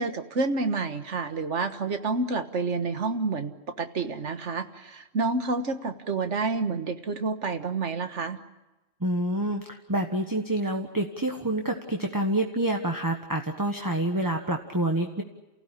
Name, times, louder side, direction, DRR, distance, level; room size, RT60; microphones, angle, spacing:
voice 1, 0.0-8.4, right 3 dB, 75° right, 8 dB, 1.8 m, -29 dB
voice 2, 9.0-15.2, right 1 dB, 15° right, 3 dB, 1.4 m, -27 dB
29.0 x 16.0 x 9.9 m, 1.1 s
omnidirectional pair, 1.2 m